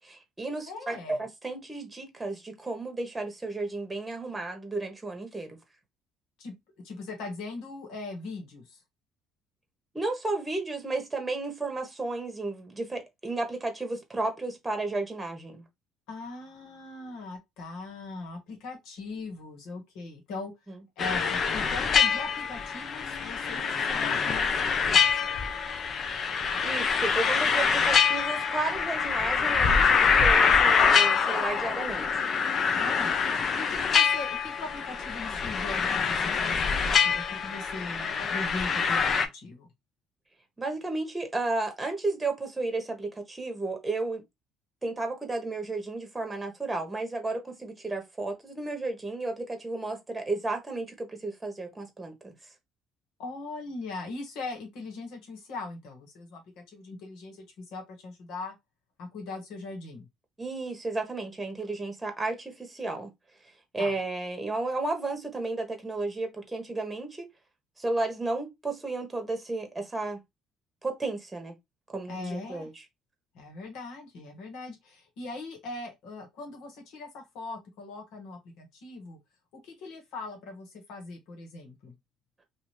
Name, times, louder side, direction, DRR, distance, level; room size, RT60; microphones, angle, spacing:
voice 1, 0.0-5.6 9.9-15.6 20.7-20.8 26.6-32.1 40.6-44.2 44.8-52.3 60.4-63.1 63.7-67.3 67.8-70.2 70.8-71.5 71.9-72.8, right 2 dB, 15° right, 1.2 m, -33 dB
voice 2, 0.7-1.2 6.4-6.5 6.8-8.8 16.1-20.5 21.0-25.3 32.7-33.1 33.5-39.7 53.2-58.5 59.0-60.1 63.8-63.9 72.1-72.7 73.3-79.2 79.5-81.9, left 3 dB, 75° left, 1.5 m, -40 dB
sound 1, 21.0-39.3, left 6 dB, 50° left, 0.6 m, -25 dB
2.6 x 2.6 x 3.2 m
supercardioid pair, 75°, 0 cm